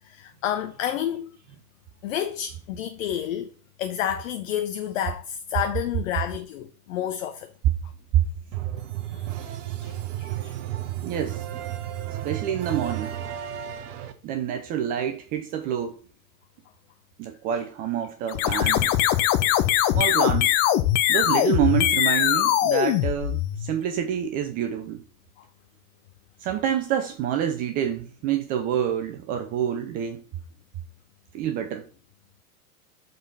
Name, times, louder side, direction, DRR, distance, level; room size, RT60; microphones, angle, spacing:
voice 1, 0.0-1.3 2.0-3.5 3.8-7.5 8.7-8.8 9.1-9.2 9.8-10.6, left 10 dB, 60° left, 0.8 m, -30 dB
sound 1, 8.5-14.1, right 12 dB, 55° right, 1.0 m, -33 dB
voice 2, 11.0-11.5 12.1-13.2 14.2-16.0 17.2-18.9 19.9-20.5 21.1-25.0 26.4-30.2 31.3-31.9, right 9 dB, 20° right, 0.3 m, -27 dB
sound 2, 18.3-23.8, left 12 dB, 35° left, 0.6 m, -21 dB
6.7 x 3.9 x 5.3 m
figure-of-eight pair, 95°, 45 cm